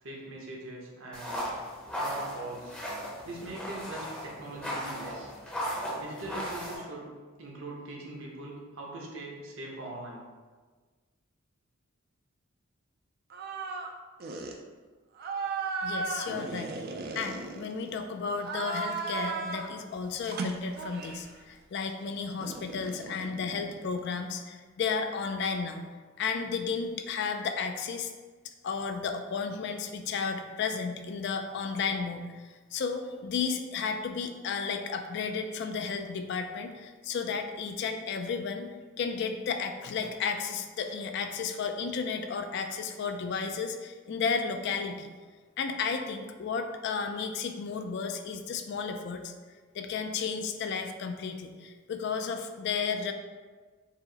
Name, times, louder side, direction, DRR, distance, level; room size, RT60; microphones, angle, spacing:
voice 1, 0.0-1.5 2.0-2.8 3.2-5.3 6.0-7.0 7.4-10.3, right 2 dB, 65° right, -2 dB, 0.9 m, -41 dB
sound 1, 1.1-6.8, equal, 5° left, 0.6 m, -36 dB
sound 2, 13.3-13.9 14.2-14.6 15.2-18.0 18.4-19.8 20.2-21.3 22.4-24.2, right 4 dB, 45° right, 0.3 m, -36 dB
voice 2, 15.8-16.7 17.1-25.8 26.2-28.1 28.6-45.1 45.6-49.3 49.7-53.1, left 5 dB, 55° left, 6 dB, 0.3 m, -33 dB
4.6 x 2.0 x 3.8 m, 1.4 s
head